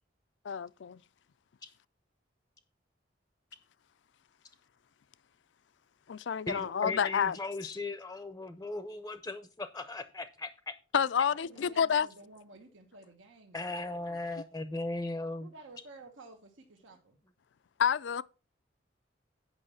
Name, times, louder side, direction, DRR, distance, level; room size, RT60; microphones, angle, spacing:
voice 1, 0.4-1.0 6.1-7.4 10.9-12.1 17.8-18.2, left 7 dB, 65° left, 0.4 m, -29 dB
voice 2, 6.5-10.7 13.5-15.5, left 2 dB, 15° left, 0.5 m, -37 dB
voice 3, 11.3-14.2 15.4-17.2, right 2 dB, 85° right, 1.3 m, -53 dB
8.8 x 5.7 x 5.6 m
head